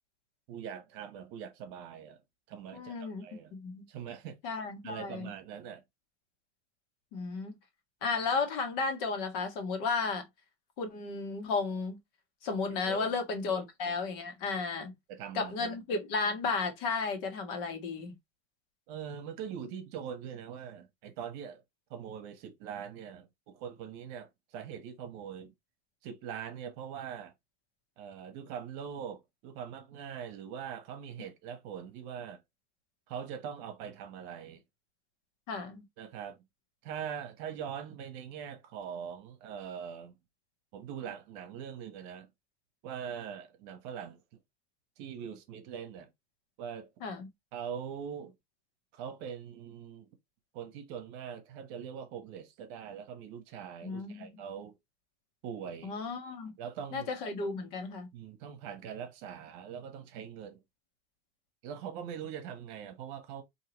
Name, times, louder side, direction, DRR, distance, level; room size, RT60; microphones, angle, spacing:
voice 1, 0.5-2.2 2.5-3.5 3.9-4.4 4.8-5.8 12.7-13.1 13.5-13.9 14.8-15.7 18.9-21.6 21.9-25.5 26.0-27.3 28.0-32.4 33.1-34.6 36.0-36.4 36.8-40.1 40.7-42.3 42.8-44.2 45.0-46.1 46.6-46.9 47.5-48.3 48.9-50.1 50.5-54.7 55.4-55.9 56.6-57.1 58.1-60.6 61.6-63.4, right 8 dB, 45° right, 1.0 m, -42 dB
voice 2, 2.7-3.2 3.5-3.8 4.4-5.3 7.1-7.5 8.0-10.2 10.8-12.0 12.4-14.9 15.3-18.1 35.5-35.8 47.0-47.3 53.8-54.3 55.8-56.5 56.9-58.1, left 4 dB, 50° left, 1.5 m, -33 dB
4.6 x 2.8 x 2.9 m
supercardioid pair, 175°, 35 cm